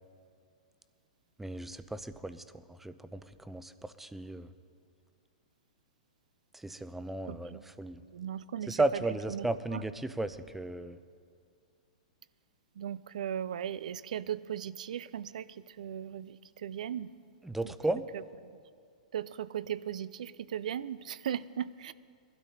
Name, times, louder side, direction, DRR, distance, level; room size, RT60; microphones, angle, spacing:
voice 1, 1.4-4.5 6.5-8.0 8.7-11.0 17.4-18.0, right 2 dB, 5° right, 12 dB, 0.5 m, -35 dB
voice 2, 7.3-7.7 8.0-9.0 9.3-9.8 12.8-17.1 17.6-17.7 18.1-18.2 19.1-21.9, right 9 dB, 70° right, 18 dB, 0.4 m, -38 dB
22.0 x 12.5 x 2.8 m, 2.3 s
hypercardioid pair, 115°, 4 cm